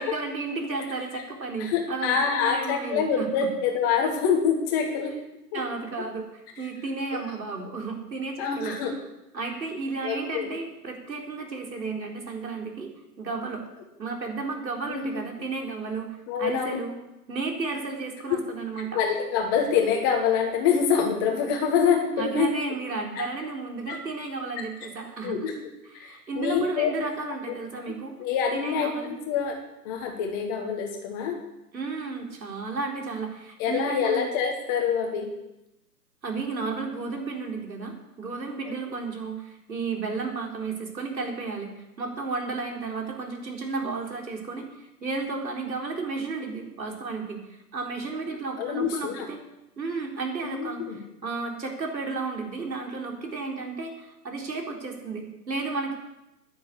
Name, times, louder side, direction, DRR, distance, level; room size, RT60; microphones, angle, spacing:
voice 1, 0.0-3.5 5.5-8.8 9.3-12.9 13.2-13.7 14.0-16.9 17.3-19.0 22.2-25.4 25.9-28.1 28.5-29.1 31.7-34.3 36.2-41.7 42.0-49.4 49.8-55.9, right 4 dB, 90° right, 1 dB, 4.4 m, -33 dB
voice 2, 1.6-5.1 5.5-5.6 6.6-6.7 7.1-7.2 8.4-8.9 10.0-10.5 14.9-15.2 16.3-16.8 18.9-22.5 23.2-23.3 23.9-24.0 25.2-25.5 25.9-27.3 28.2-29.6 29.8-31.4 33.6-35.3 38.7-38.8 48.6-49.3 50.4-51.0, left 6 dB, 15° left, 2 dB, 1.2 m, -26 dB
11.0 x 9.6 x 8.4 m, 0.92 s
hypercardioid pair, 160°, 50 cm